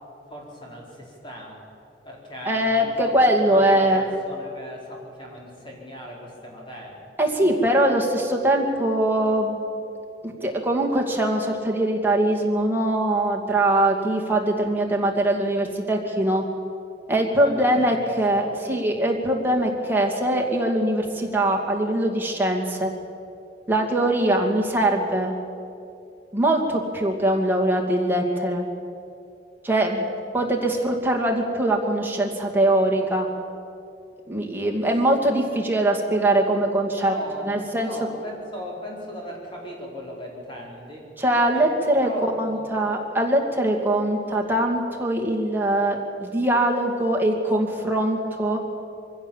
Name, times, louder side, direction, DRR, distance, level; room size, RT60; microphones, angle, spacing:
voice 1, 0.3-1.6 2.0-7.0 17.4-17.7 17.9-18.0 18.3-18.5 37.0-41.1 41.5-41.6 42.0-42.7, equal, 30° left, -2 dB, 4.6 m, -38 dB
voice 2, 2.5-4.1 7.2-9.6 10.2-16.4 17.1-22.9 23.7-25.3 26.3-28.6 29.6-30.1 30.3-33.3 34.3-37.1 37.4-37.9 41.2-42.1 42.4-48.6, right 1 dB, 10° right, -1 dB, 2.3 m, -22 dB
23.5 x 16.0 x 7.3 m, 2.5 s
head